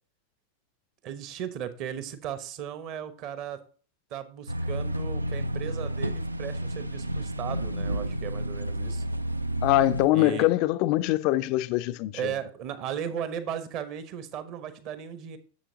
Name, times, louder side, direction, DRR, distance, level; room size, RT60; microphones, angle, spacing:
voice 1, 1.0-3.6 4.1-9.0 10.1-10.5 12.1-15.4, right 9 dB, 40° right, 1.0 m, -36 dB
sound 1, 4.5-10.1, right 1 dB, 85° right, 0.3 m, -31 dB
voice 2, 9.6-12.1, left 16 dB, 45° left, 0.4 m, -23 dB
10.5 x 7.2 x 2.8 m
figure-of-eight pair, 90°, 0 cm